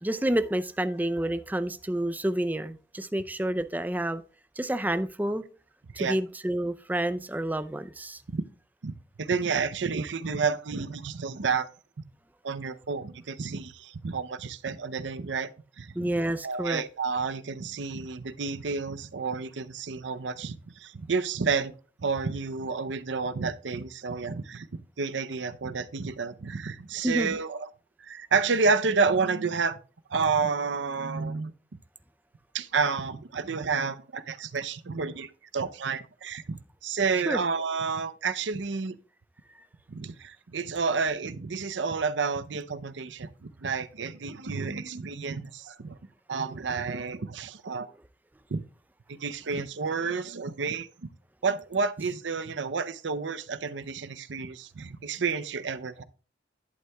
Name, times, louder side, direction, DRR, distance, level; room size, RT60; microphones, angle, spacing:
voice 1, 0.0-4.2 4.6-5.4 6.0-8.2 15.9-16.8 27.0-27.4 37.3-37.4, right 1 dB, 10° right, 0.4 m, -29 dB
voice 2, 8.8-11.7 12.4-15.5 15.8-16.1 16.4-27.7 28.0-29.8 30.1-31.5 32.5-39.0 39.9-46.0 46.3-47.9 48.5-48.6 49.1-50.9 51.4-56.0, right 5 dB, 85° right, 0.6 m, -30 dB
11.0 x 8.4 x 2.3 m
head